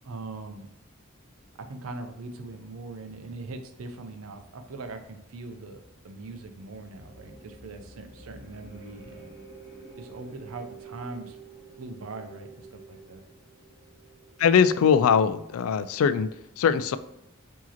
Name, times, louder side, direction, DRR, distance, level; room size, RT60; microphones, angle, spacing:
voice 1, 0.0-0.7 1.6-9.3 10.0-11.4 11.8-13.2, right 3 dB, 85° right, 7 dB, 0.5 m, -41 dB
sound 1, 5.2-14.6, right 4 dB, 25° right, 1.0 m, -49 dB
voice 2, 14.4-16.3 16.6-17.0, left 7 dB, 80° left, 13 dB, 0.3 m, -21 dB
4.8 x 2.8 x 2.8 m, 0.85 s
head